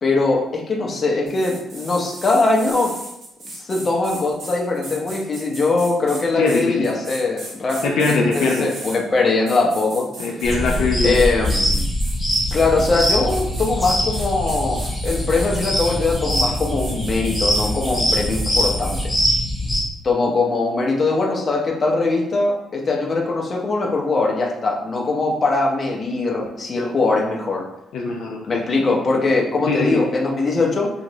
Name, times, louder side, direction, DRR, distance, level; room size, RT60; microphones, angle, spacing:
voice 1, 0.0-2.9 3.5-10.1 11.0-11.8 12.5-19.0 20.0-27.6 28.5-30.9, left 3 dB, 40° left, -1 dB, 0.7 m, -21 dB
sound 1, 1.3-9.0 9.5-10.8 11.1-19.0, right 2 dB, 70° right, 1.0 m, -36 dB
voice 2, 6.4-6.9 7.8-8.7 10.2-11.2 27.9-28.6 29.7-30.0, left 3 dB, 75° left, -1 dB, 0.4 m, -21 dB
sound 2, 10.4-19.8, equal, 10° left, 1.2 m, -22 dB
3.0 x 2.4 x 2.7 m, 0.82 s
cardioid pair, 90°, 0 cm